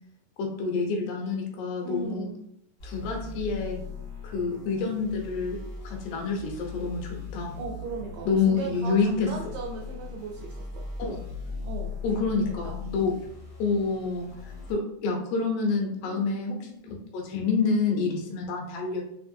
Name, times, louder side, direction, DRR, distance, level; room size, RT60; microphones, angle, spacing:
voice 1, 0.4-2.3 2.8-3.8 4.2-5.6 5.8-7.6 8.3-9.3 11.0-11.2 12.0-13.1 13.6-14.3 14.7-16.6 16.8-19.0, left 4 dB, 80° left, 0 dB, 3.0 m, -28 dB
voice 2, 1.8-2.4 7.6-10.9 11.6-12.2 12.6-12.7 16.0-16.3, right 3 dB, 90° right, -1 dB, 1.9 m, -37 dB
sound 1, 2.8-14.7, left 4 dB, 65° left, 0.9 m, -39 dB
6.4 x 2.6 x 2.6 m, 0.77 s
omnidirectional pair, 4.7 m